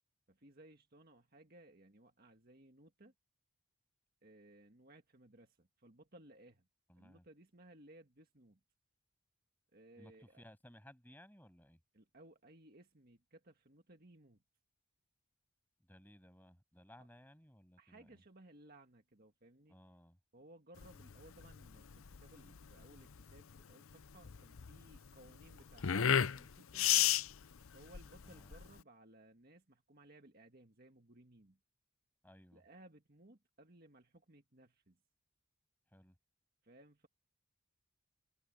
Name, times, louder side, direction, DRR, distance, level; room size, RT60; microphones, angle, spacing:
voice 1, 0.3-3.1 4.2-6.6 7.0-8.6 9.7-10.4 11.9-14.4 17.0-17.1 17.8-19.8 20.3-27.2 27.7-31.6 32.5-35.0 36.6-37.1, right 1 dB, 45° right, 1.9 m, -61 dB
voice 2, 6.9-7.2 10.0-11.8 15.8-18.2 19.7-20.2 28.2-28.5 32.2-32.6 35.9-36.1, equal, 10° left, 7.6 m, -60 dB
sound 1, 20.8-28.8, left 9 dB, 70° left, 0.6 m, -34 dB
head